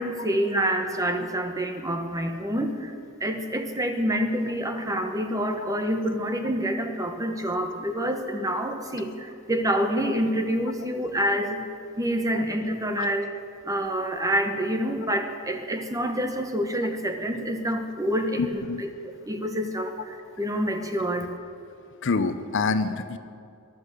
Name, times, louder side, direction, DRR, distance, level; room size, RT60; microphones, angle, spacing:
voice 1, 0.0-2.9 3.2-11.6 12.0-13.3 13.6-21.3, equal, 15° right, 6 dB, 1.1 m, -27 dB
voice 2, 18.4-18.8 22.0-23.2, left 4 dB, 60° left, 11 dB, 0.7 m, -26 dB
15.0 x 11.0 x 6.7 m, 2.4 s
head